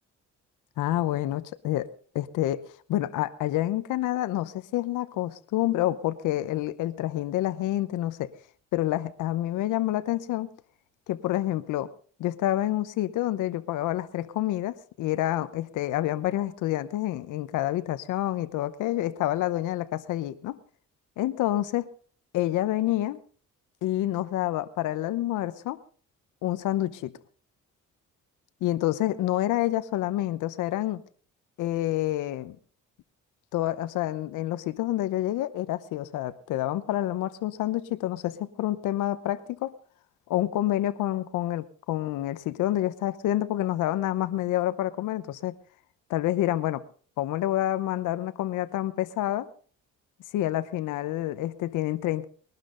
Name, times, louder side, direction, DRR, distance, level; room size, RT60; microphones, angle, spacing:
voice 1, 0.8-1.9 2.1-8.3 8.7-10.5 11.1-11.9 12.2-20.6 21.2-21.9 22.3-23.2 23.8-25.8 26.4-27.1 28.6-31.0 31.6-32.6 33.5-39.7 40.3-45.5 46.1-46.8 47.2-49.5 50.3-52.3, left 14 dB, 90° left, 0.9 m, -28 dB
20.0 x 12.0 x 3.9 m
cardioid pair, 90°, 30 cm